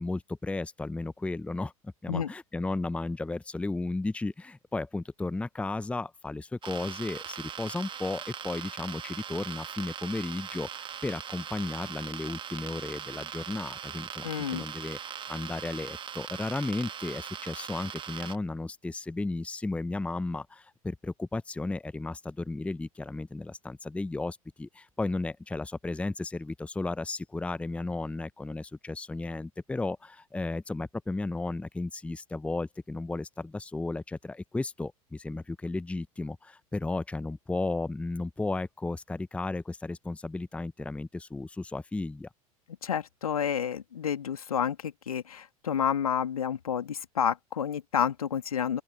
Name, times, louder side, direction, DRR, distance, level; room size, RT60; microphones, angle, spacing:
voice 1, 0.0-42.3, left 2 dB, 5° left, 0.9 m, -34 dB
sound 1, 6.6-18.4, right 8 dB, 25° right, 1.9 m, -40 dB
voice 2, 14.2-14.6 42.8-48.8, left 8 dB, 70° left, 2.5 m, -30 dB
open air
figure-of-eight pair, 80°, 19 cm